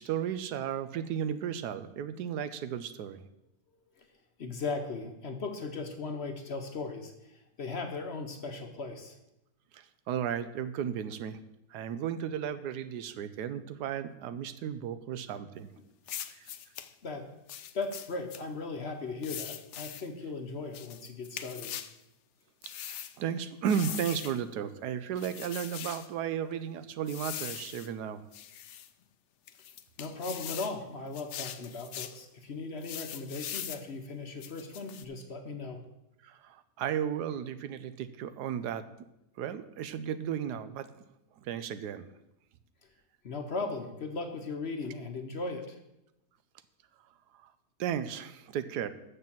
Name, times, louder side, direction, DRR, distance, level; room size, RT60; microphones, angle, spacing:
voice 1, 0.0-3.2 9.7-11.4 11.7-15.7 16.3-16.5 22.9-28.2 36.2-38.9 39.4-40.9 41.4-42.1 47.3-47.5 47.8-48.9, right 8 dB, 85° right, 12 dB, 1.2 m, -34 dB
voice 2, 4.4-9.2 17.0-17.3 17.7-21.8 30.0-35.8 43.2-45.8, left 3 dB, 50° left, 5 dB, 1.0 m, -37 dB
sound 1, 16.1-16.9 17.5-18.4 19.2-20.1 20.7-21.9 22.6-23.1 23.7-24.4 25.2-26.1 27.1-27.9 28.3-28.9 29.5-30.8 31.1-32.2 32.8-33.8 34.4-35.0, left 10 dB, 70° left, 0.7 m, -41 dB
6.8 x 6.7 x 7.3 m, 0.86 s
omnidirectional pair, 1.7 m